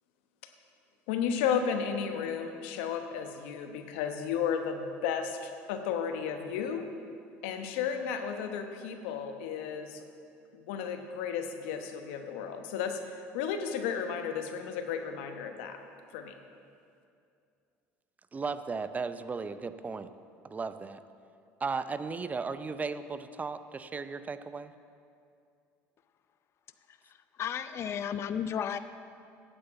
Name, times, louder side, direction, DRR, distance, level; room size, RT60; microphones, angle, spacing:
voice 1, 1.1-6.8 7.4-10.0 10.5-15.8 16.1-16.3, left 7 dB, 80° left, 6 dB, 1.0 m, -33 dB
voice 2, 18.3-20.1 20.4-21.0 21.6-24.7, right 4 dB, 25° right, 11 dB, 0.5 m, -36 dB
voice 3, 27.4-28.8, left 8 dB, 45° left, 10 dB, 0.5 m, -33 dB
9.0 x 7.9 x 7.9 m, 2.5 s
supercardioid pair, 80°, 6 cm